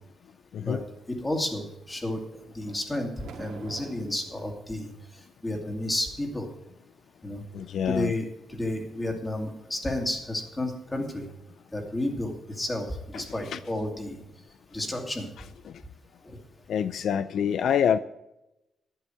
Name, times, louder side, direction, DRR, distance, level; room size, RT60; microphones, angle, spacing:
voice 1, 0.6-2.2 2.5-3.1 3.4-4.9 5.4-6.5 7.2-7.4 7.8-11.2 11.7-14.2 14.7-15.3 16.2-16.4, left 1 dB, 15° left, 2 dB, 2.4 m, -31 dB
sound 1, 2.6-4.5, right 5 dB, 85° right, 2.2 m, -45 dB
voice 2, 7.5-8.1 13.1-13.2 13.5-13.6 15.7-15.8 16.7-18.0, left 8 dB, 65° left, 13 dB, 0.4 m, -26 dB
11.5 x 11.0 x 4.5 m, 0.91 s
cardioid pair, 135°, 0 cm